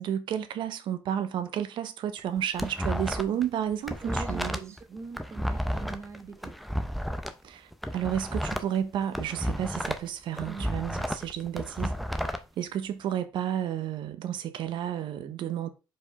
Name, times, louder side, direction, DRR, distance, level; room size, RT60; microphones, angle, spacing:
voice 1, 0.0-4.7 7.4-12.0 12.2-15.7, right 10 dB, 70° right, 1.0 m, -32 dB
sound 1, 2.2-3.4 3.7-7.3 7.7-10.1 10.4-12.4, equal, ahead, 0.8 m, -32 dB
voice 2, 4.0-6.6 10.5-10.7, right 3 dB, 35° right, 1.3 m, -41 dB
5.3 x 4.4 x 5.5 m
cardioid pair, 115°, 8 cm